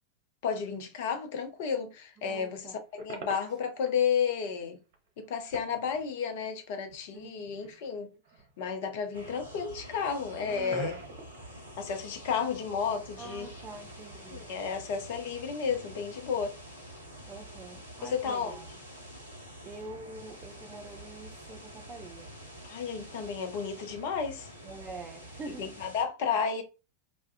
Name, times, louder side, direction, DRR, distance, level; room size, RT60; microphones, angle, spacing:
voice 1, 0.4-4.8 5.2-8.1 8.6-11.0 11.8-13.5 14.3-16.5 18.0-18.6 22.7-24.5 25.6-26.6, left 6 dB, 50° left, 0.6 m, -32 dB
voice 2, 2.2-2.8 7.1-7.5 13.2-14.5 17.3-18.7 19.6-22.3 24.6-25.7, right 3 dB, 20° right, 0.4 m, -46 dB
sound 1, 3.0-4.0 4.3-4.4 4.9-5.0 5.3-6.4 6.9-8.0 8.3-8.8 9.2-9.5 9.9-12.8 13.0-13.9, right 4 dB, 50° right, 0.7 m, -45 dB
sound 2, 9.1-26.0, equal, 85° left, 0.7 m, -47 dB
2.3 x 2.1 x 2.5 m
figure-of-eight pair, 90°, 0 cm